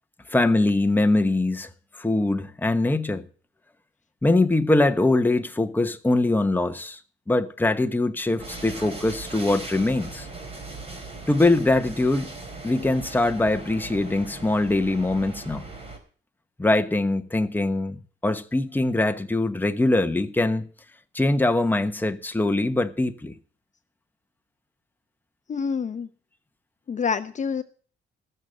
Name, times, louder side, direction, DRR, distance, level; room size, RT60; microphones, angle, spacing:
voice 1, 0.3-1.7 2.0-3.2 4.2-7.0 7.3-10.3 11.3-12.3 12.6-15.6 16.6-18.0 18.2-20.7 21.1-23.3, left 2 dB, 10° left, 1.1 m, -22 dB
sound 1, 8.4-16.0, right 3 dB, 30° right, 4.0 m, -39 dB
voice 2, 25.5-26.1 26.9-27.6, left 6 dB, 40° left, 0.7 m, -27 dB
14.0 x 6.8 x 7.6 m
cardioid pair, 90°, 20 cm